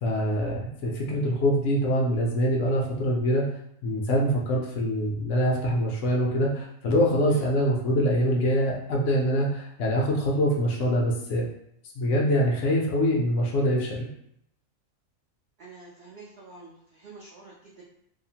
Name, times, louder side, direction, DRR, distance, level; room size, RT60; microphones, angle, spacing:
voice 1, 0.0-3.4 3.8-11.4 12.0-14.1, equal, 65° left, -2 dB, 0.8 m, -24 dB
voice 2, 15.6-17.8, right 3 dB, 65° right, -5 dB, 0.6 m, -46 dB
2.7 x 2.0 x 2.7 m, 0.74 s
omnidirectional pair, 1.5 m